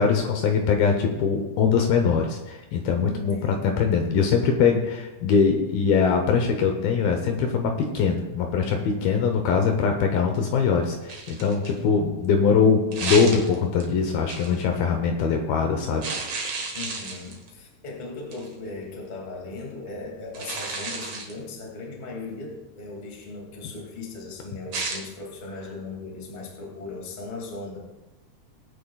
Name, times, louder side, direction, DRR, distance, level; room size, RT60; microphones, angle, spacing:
voice 1, 0.0-16.1, left 5 dB, 75° left, 4 dB, 2.4 m, -22 dB
voice 2, 3.0-3.7 9.0-9.4 16.7-27.8, left 3 dB, 20° left, -1 dB, 1.2 m, -38 dB
sound 1, 11.1-11.8 12.9-13.9 14.3-14.6 16.0-17.5 18.3-18.5 20.3-21.4 24.7-25.0, right 3 dB, 60° right, 1.6 m, -32 dB
20.5 x 9.1 x 2.3 m, 1.1 s
omnidirectional pair, 4.9 m